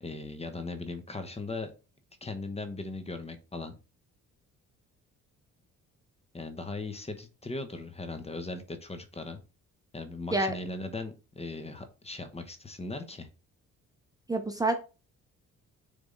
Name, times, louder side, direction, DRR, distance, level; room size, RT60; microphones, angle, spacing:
voice 1, 0.0-1.7 2.2-3.8 6.3-9.4 9.9-13.3, left 3 dB, 20° left, 8 dB, 1.0 m, -38 dB
voice 2, 14.3-14.7, right 2 dB, 10° right, 6 dB, 0.9 m, -27 dB
6.8 x 3.5 x 3.9 m, 0.32 s
cardioid pair, 90°, 30 cm